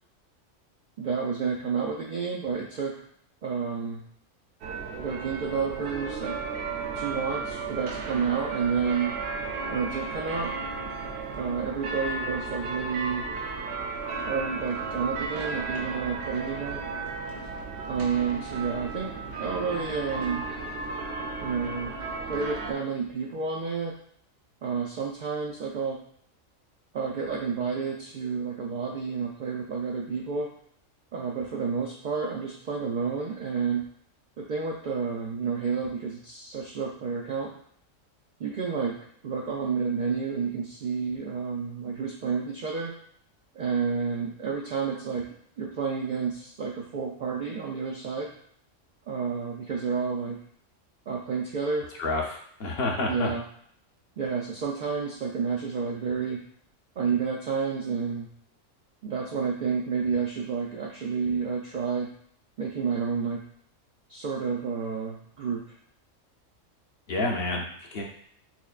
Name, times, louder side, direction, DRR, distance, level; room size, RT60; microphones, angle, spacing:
voice 1, 1.0-3.0 3.4-4.0 4.9-6.4 7.0-9.2 9.7-10.5 11.3-13.3 14.2-16.8 17.9-20.4 21.4-21.9 22.3-24.0 24.6-26.0 26.9-30.5 31.1-33.9 34.4-37.5 38.4-39.0 39.2-43.0 43.5-48.3 49.1-50.4 51.1-51.9 53.1-53.4 54.2-56.4 57.0-58.3 59.0-62.1 62.6-63.4 64.1-65.6, right 5 dB, 85° right, -1 dB, 0.4 m, -30 dB
sound 1, 4.6-22.7, right 4 dB, 65° right, 0.7 m, -34 dB
voice 2, 52.0-53.3 67.1-68.0, left 2 dB, 55° left, 0 dB, 0.8 m, -29 dB
5.9 x 2.1 x 2.4 m, 0.65 s
omnidirectional pair, 1.4 m